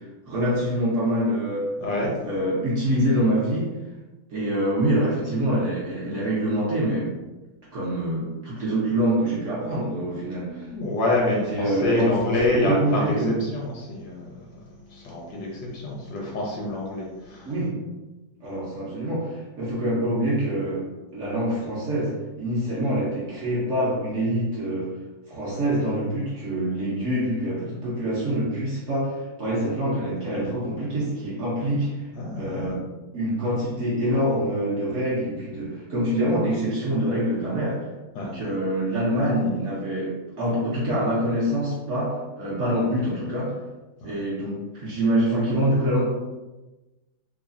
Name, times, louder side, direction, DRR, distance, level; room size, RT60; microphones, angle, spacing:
voice 1, 0.0-1.7 2.2-3.8 4.3-7.1 7.7-10.7 11.4-13.4 17.5-17.8 18.4-20.8 21.1-24.9 25.3-32.1 32.4-32.8 33.1-37.9 38.3-43.6 44.0-46.0, right 1 dB, 70° right, -7 dB, 0.7 m, -25 dB
voice 2, 1.8-2.1 10.4-13.1 13.4-14.4 14.9-17.5 32.1-32.7 38.1-38.3 44.0-44.1, left 2 dB, 75° left, -3 dB, 1.1 m, -27 dB
3.1 x 2.0 x 2.5 m, 1.1 s
omnidirectional pair, 2.0 m